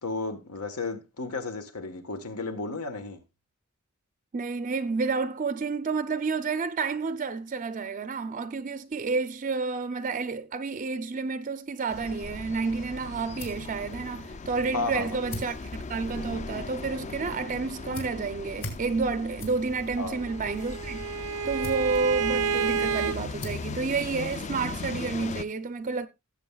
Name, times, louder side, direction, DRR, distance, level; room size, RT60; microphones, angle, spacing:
voice 1, 0.0-3.2 14.7-15.1 20.0-20.3, left 3 dB, 85° left, 1.3 m, -33 dB
voice 2, 4.3-21.0 21.4-26.1, right 4 dB, 35° right, 0.4 m, -30 dB
sound 1, 11.9-25.4, left 3 dB, 30° left, 0.4 m, -38 dB
sound 2, 12.8-24.9, left 1 dB, 65° left, 3.3 m, -46 dB
Bowed string instrument, 20.0-23.2, right 6 dB, 85° right, 0.6 m, -29 dB
17.0 x 7.8 x 2.3 m
head